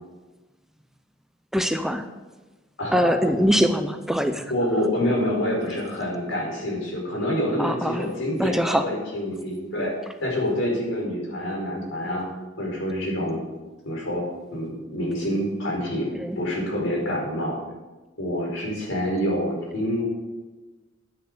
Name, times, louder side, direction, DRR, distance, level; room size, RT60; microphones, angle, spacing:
voice 1, 1.5-2.1 2.9-4.5 7.6-8.1 8.4-8.9 16.1-16.4, equal, ahead, 7 dB, 0.6 m, -23 dB
voice 2, 2.8-3.3 4.5-9.9 10.2-12.2 12.6-13.4 13.8-14.2 14.5-16.1 16.4-17.6 18.2-20.0, equal, 75° left, -2 dB, 4.9 m, -27 dB
10.0 x 9.4 x 6.8 m, 1.2 s
head